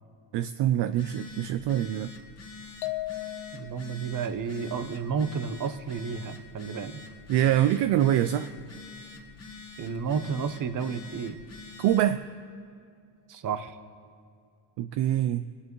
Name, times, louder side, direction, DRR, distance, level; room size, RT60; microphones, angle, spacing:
voice 1, 0.3-2.1 7.3-8.5 11.8-12.2 14.8-15.5, right 12 dB, 65° right, 11 dB, 0.5 m, -24 dB
Telephone, 0.8-12.1, left 4 dB, 35° left, 2.2 m, -46 dB
sound 1, 2.8-4.0, left 17 dB, 70° left, 0.7 m, -35 dB
voice 2, 3.5-7.0 9.8-11.4 13.3-13.8, right 6 dB, 45° right, 11 dB, 0.9 m, -31 dB
21.5 x 9.7 x 3.1 m, 2.3 s
cardioid pair, 85°, 45 cm